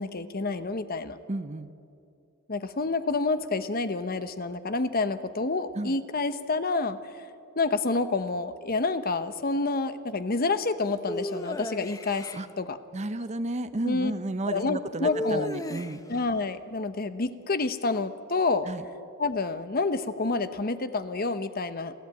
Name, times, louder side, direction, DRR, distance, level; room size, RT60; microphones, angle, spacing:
voice 1, 0.0-1.2 2.5-7.2 7.6-12.8 13.8-14.1 14.5-15.5 16.1-18.7 19.2-21.9, left 3 dB, 45° left, 11 dB, 0.9 m, -28 dB
voice 2, 1.3-1.7 5.8-5.9 12.3-12.5 12.9-16.0 18.7-18.8, right 2 dB, 30° right, 12 dB, 0.7 m, -32 dB
sound 1, 11.1-12.4 15.0-16.2, left 1 dB, 15° left, 0.7 m, -34 dB
30.0 x 12.0 x 8.9 m, 2.5 s
head